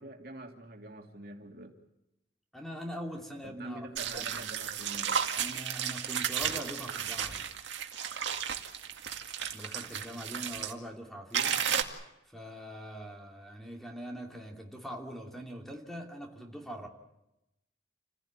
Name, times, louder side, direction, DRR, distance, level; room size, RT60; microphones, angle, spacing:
voice 1, 0.0-1.8 3.4-5.2 9.9-10.3, right 1 dB, 55° right, 2.8 m, -47 dB
voice 2, 2.5-4.5 5.3-7.5 9.5-11.7 12.3-16.9, equal, ahead, 2.8 m, -43 dB
sound 1, 3.9-10.7 11.3-11.8, right 8 dB, 80° right, 2.2 m, -33 dB
28.5 x 16.0 x 9.0 m
head